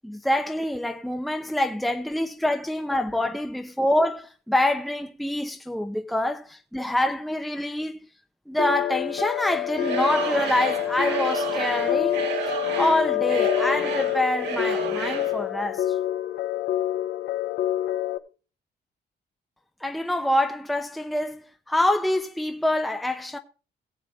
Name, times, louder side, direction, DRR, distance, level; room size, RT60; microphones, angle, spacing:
voice 1, 0.0-8.0 8.5-12.2 12.8-15.9 19.8-23.4, left 1 dB, ahead, 0.7 m, -26 dB
sound 1, 8.6-18.2, left 12 dB, 85° left, 1.0 m, -27 dB
Singing / Crowd, 9.7-15.4, right 6 dB, 80° right, 2.7 m, -31 dB
18.5 x 8.2 x 3.5 m
cardioid pair, 145°, 17 cm